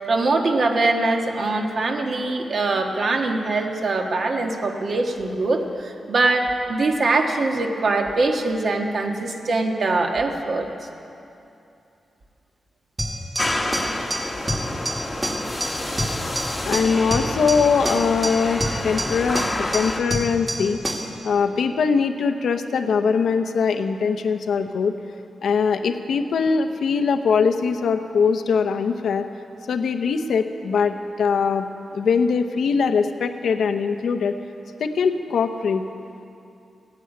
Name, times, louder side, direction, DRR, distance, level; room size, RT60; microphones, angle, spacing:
voice 1, 0.1-10.7, right 3 dB, 50° right, 3 dB, 1.5 m, -22 dB
sound 1, 13.0-21.2, equal, 20° right, 1.7 m, -28 dB
sound 2, 13.4-20.0, left 1 dB, 15° left, 1.1 m, -29 dB
voice 2, 16.6-20.8 21.2-25.0 25.4-29.3 29.7-34.3 34.8-35.9, left 5 dB, 85° left, 8 dB, 0.8 m, -22 dB
15.5 x 9.8 x 9.0 m, 2.7 s
wide cardioid pair, 140°, 0 cm